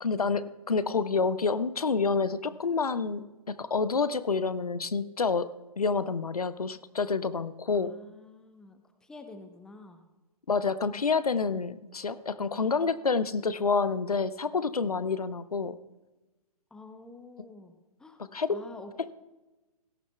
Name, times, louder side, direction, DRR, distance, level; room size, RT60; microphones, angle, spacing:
voice 1, 0.0-5.5 5.8-7.9 10.5-15.8 18.3-18.6, left 4 dB, 75° left, 14 dB, 0.7 m, -28 dB
voice 2, 7.7-10.0 16.7-18.2 18.5-18.9, left 2 dB, 5° left, 7 dB, 0.7 m, -48 dB
17.0 x 14.5 x 2.3 m, 1.1 s
figure-of-eight pair, 125°, 19 cm